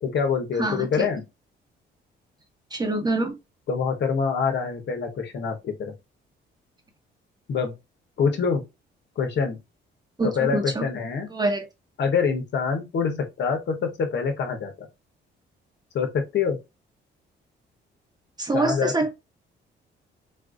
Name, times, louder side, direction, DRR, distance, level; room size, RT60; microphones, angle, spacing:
voice 1, 0.0-1.2 3.7-5.9 7.5-7.7 8.2-8.6 9.2-9.6 10.2-11.3 12.0-14.9 15.9-16.6 18.5-18.9, left 6 dB, 60° left, 1.1 m, -25 dB
voice 2, 0.6-1.1 2.7-3.3 10.2-10.8 11.3-11.7 18.4-19.1, right 2 dB, 20° right, 1.1 m, -25 dB
4.1 x 2.6 x 2.4 m
cardioid pair, 90°, 20 cm